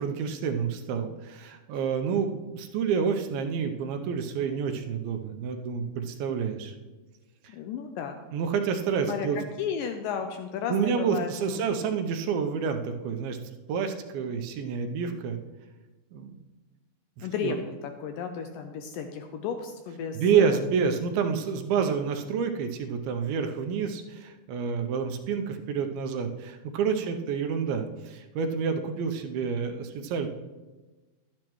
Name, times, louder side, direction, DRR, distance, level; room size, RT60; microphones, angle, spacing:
voice 1, 0.0-6.7 8.3-9.4 10.7-13.4 13.7-15.4 16.1-16.3 17.2-17.6 20.2-30.3, right 6 dB, 80° right, 6 dB, 2.5 m, -28 dB
voice 2, 7.5-8.2 9.1-11.8 17.2-20.6 27.0-27.1, left 7 dB, 80° left, 5 dB, 2.0 m, -34 dB
12.0 x 10.5 x 3.0 m, 1.2 s
omnidirectional pair, 4.4 m